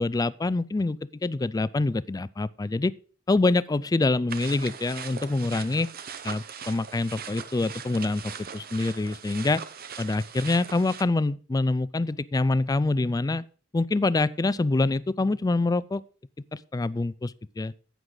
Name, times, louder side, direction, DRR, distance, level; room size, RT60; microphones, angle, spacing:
voice 1, 0.0-2.9 3.3-5.9 6.2-9.6 10.0-13.4 13.7-16.0 16.5-17.7, left 2 dB, 20° left, 0.3 m, -26 dB
sound 1, 4.3-11.0, right 7 dB, 50° right, 0.8 m, -40 dB
10.5 x 8.1 x 3.9 m
head